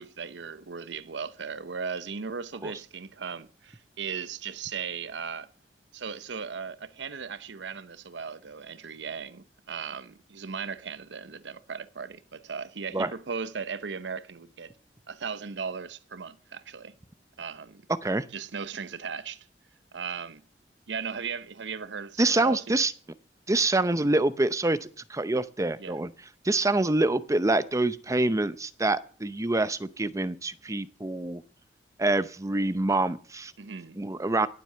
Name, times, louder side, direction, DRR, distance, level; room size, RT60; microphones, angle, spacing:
voice 1, 0.0-5.5 5.9-14.7 15.1-16.9 17.4-17.8 18.3-19.5 19.9-20.4 20.9-22.8 25.8-26.0 33.6-34.0, right 6 dB, 85° right, 0.8 m, -37 dB
voice 2, 22.2-22.9 23.5-26.1 26.4-31.4 32.0-33.5 34.0-34.5, right 2 dB, 20° right, 0.7 m, -26 dB
18.0 x 7.6 x 6.8 m
head